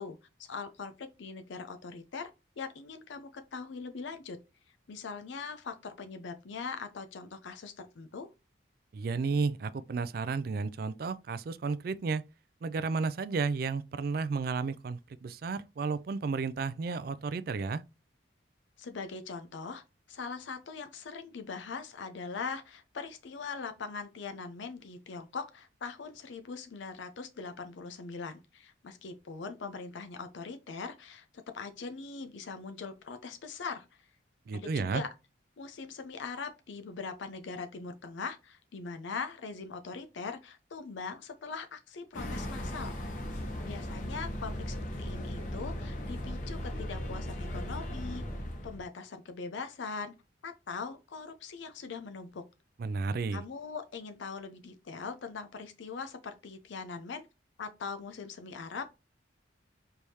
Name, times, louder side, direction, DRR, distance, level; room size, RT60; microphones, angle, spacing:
voice 1, 0.0-2.3 2.6-4.4 4.9-8.3 18.8-33.9 34.5-35.1 35.6-43.0 43.6-48.2 48.6-50.2 50.4-52.5 53.3-57.3 57.6-58.9, left 5 dB, 75° left, 0.5 m, -41 dB
voice 2, 8.9-12.2 12.6-17.8 34.5-35.0 52.8-53.4, right 4 dB, 50° right, 0.3 m, -32 dB
sound 1, 42.1-48.9, equal, 40° left, 1.2 m, -37 dB
4.6 x 3.4 x 2.7 m
head